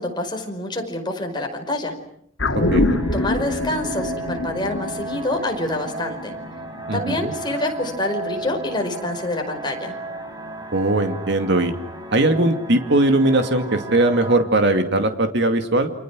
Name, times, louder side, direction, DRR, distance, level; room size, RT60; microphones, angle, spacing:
voice 1, 0.0-1.9 3.1-6.3 6.9-10.0, left 1 dB, 25° left, 3 dB, 5.2 m, -26 dB
sound 1, 2.4-7.0 7.3-7.4, left 2 dB, 85° left, 2.4 m, -25 dB
sound 2, 2.5-14.4, right 2 dB, 20° right, 5.4 m, -34 dB
voice 2, 2.7-3.0 6.9-7.3 10.7-11.7 12.1-15.9, right 2 dB, 65° right, 7 dB, 2.4 m, -19 dB
29.5 x 27.0 x 6.3 m, 0.68 s
head